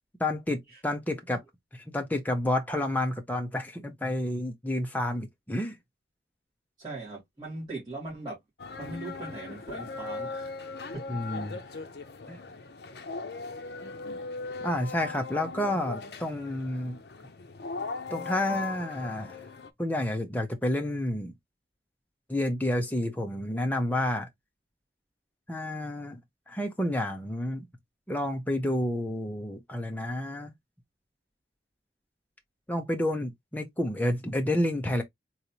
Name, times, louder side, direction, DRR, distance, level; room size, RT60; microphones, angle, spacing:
voice 1, 0.2-1.4 1.7-5.8 11.1-11.6 12.3-12.4 14.6-17.0 18.1-19.4 19.8-21.3 22.3-24.3 25.5-26.2 26.5-27.7 28.1-30.5 32.7-35.0, left 1 dB, 10° left, 0.7 m, -30 dB
voice 2, 6.8-8.4 8.8-10.5 10.9-11.0 11.7-11.8, right 2 dB, 25° right, 2.4 m, -40 dB
sound 1, 8.6-19.7, left 4 dB, 65° left, 0.6 m, -39 dB
4.0 x 3.1 x 2.8 m
head